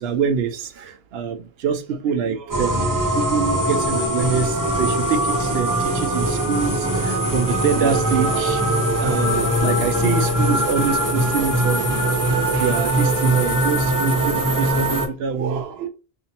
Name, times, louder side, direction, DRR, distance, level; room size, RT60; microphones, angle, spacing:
voice 1, 0.0-12.1 12.5-15.9, right 6 dB, 75° right, 0.8 m, -25 dB
sound 1, 2.5-15.1, right 1 dB, 20° right, 0.8 m, -21 dB
sound 2, 9.1-14.1, left 4 dB, 85° left, 1.3 m, -34 dB
4.3 x 2.9 x 2.8 m
omnidirectional pair, 1.1 m